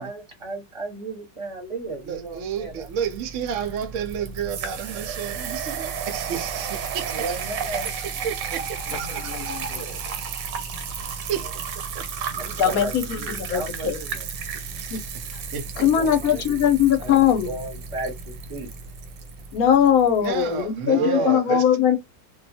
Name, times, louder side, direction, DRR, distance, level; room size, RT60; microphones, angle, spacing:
voice 1, 0.0-2.9 7.1-7.9 9.7-10.0 11.4-11.5 12.4-14.3 15.7-16.7 17.0-18.7 20.8-21.6, right 3 dB, 25° right, 0.8 m, -33 dB
voice 2, 2.1-7.4 8.2-9.5 11.0-11.5 11.9-12.0 15.1-15.2 15.5-16.4 20.2-21.6, right 8 dB, 65° right, 0.7 m, -31 dB
sound 1, 2.3-20.3, right 6 dB, 90° right, 1.3 m, -33 dB
voice 3, 9.2-9.8 12.6-14.0 14.9-15.0 15.8-17.5 19.5-22.0, left 9 dB, 65° left, 1.0 m, -20 dB
2.7 x 2.3 x 2.6 m
omnidirectional pair, 1.8 m